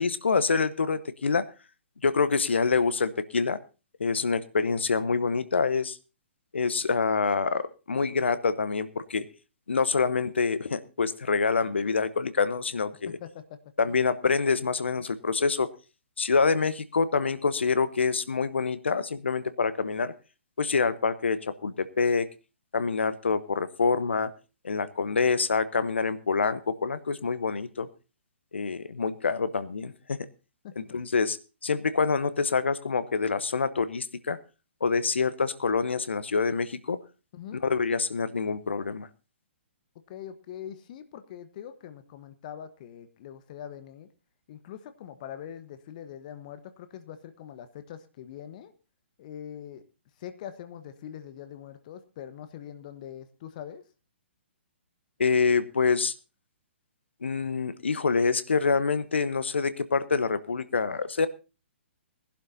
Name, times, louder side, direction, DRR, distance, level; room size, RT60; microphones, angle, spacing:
voice 1, 0.0-1.5 2.0-3.6 4.0-6.0 6.5-9.3 9.7-13.2 13.8-15.7 16.2-20.1 20.6-22.3 22.7-24.3 24.6-27.9 28.5-30.3 30.8-31.4 31.6-34.4 34.8-37.0 37.6-39.1 55.2-56.1 57.2-61.3, left 5 dB, 70° left, 14 dB, 1.0 m, -26 dB
voice 2, 13.1-13.6 13.9-14.0 30.6-30.8 37.3-37.6 40.1-44.1 44.5-48.7 49.2-49.9 50.2-53.8, left 9 dB, 40° left, 11 dB, 1.1 m, -43 dB
21.0 x 11.5 x 2.7 m, 0.31 s
figure-of-eight pair, 125°, 6 cm